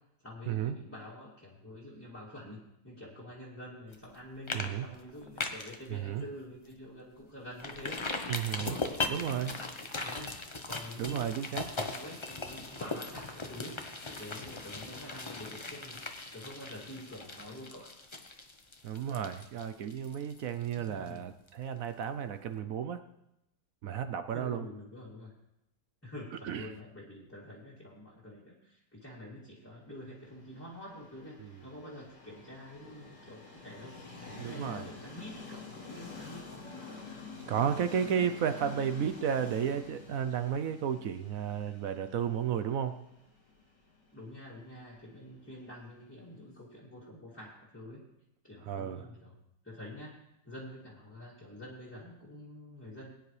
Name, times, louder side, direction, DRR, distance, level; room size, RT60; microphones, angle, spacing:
voice 1, 0.2-8.0 8.6-16.0 16.3-17.9 20.8-21.3 24.3-25.3 26.0-36.7 44.1-48.0 48.4-49.3 49.6-50.2 50.4-53.1, left 1 dB, 5° left, -7 dB, 2.3 m, -47 dB
sound 1, 3.9-4.2 4.5-4.7 5.0-5.8 6.2-6.3 6.7-6.8 7.6-21.2 21.5-21.6, left 3 dB, 25° left, 0.6 m, -39 dB
voice 2, 4.5-4.9 5.9-6.2 8.3-8.8 9.1-9.5 11.0-11.6 18.8-23.0 23.8-24.6 26.4-26.7 31.4-31.6 34.4-34.9 37.4-43.0 48.7-49.0, right 8 dB, 65° right, 9 dB, 0.9 m, -33 dB
Train, 30.4-46.2, left 4 dB, 85° left, 3.4 m, -48 dB
21.0 x 9.8 x 3.3 m, 0.85 s
omnidirectional pair, 1.8 m